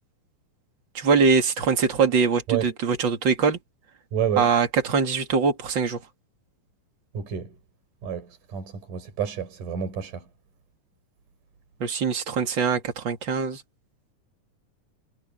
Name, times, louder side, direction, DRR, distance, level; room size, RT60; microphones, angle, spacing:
voice 1, 0.9-3.6 4.4-6.0 11.8-13.6, right 5 dB, 35° right, 2.9 m, -22 dB
voice 2, 4.1-4.5 7.1-7.5 8.0-8.3 8.5-10.2, right 8 dB, 65° right, 6.3 m, -29 dB
omnidirectional pair, 3.9 m